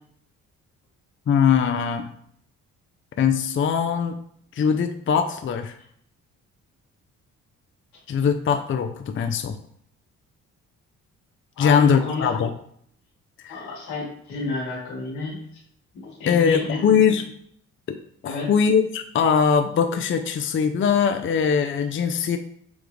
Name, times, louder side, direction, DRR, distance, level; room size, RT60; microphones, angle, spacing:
voice 1, 1.3-2.1 3.2-4.2 4.6-5.8 8.1-9.6 11.6-12.5 13.4-13.7 16.3-17.2 17.9-18.0 18.2-22.4, left 7 dB, 35° left, 7 dB, 0.5 m, -21 dB
voice 2, 11.6-12.3 13.5-15.4 15.9-17.0 18.2-18.5, left 3 dB, 90° left, -5 dB, 1.9 m, -30 dB
7.0 x 2.4 x 3.2 m, 0.66 s
supercardioid pair, 55°, 35 cm